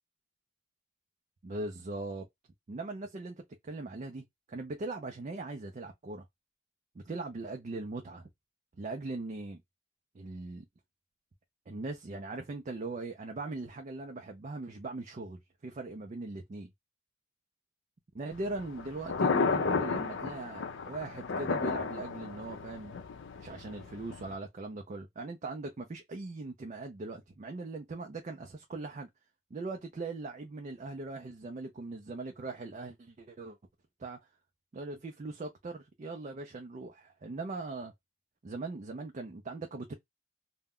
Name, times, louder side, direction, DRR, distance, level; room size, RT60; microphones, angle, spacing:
voice 1, 1.4-2.3 2.7-6.3 7.0-8.3 8.8-9.6 10.1-10.6 11.7-16.7 18.1-23.0 23.4-29.1 29.5-33.6 34.0-34.2 34.7-37.9 38.4-39.9, right 3 dB, 35° right, 0.4 m, -40 dB
Thunder, 18.3-24.3, left 4 dB, 60° left, 0.5 m, -33 dB
2.2 x 2.1 x 3.5 m
head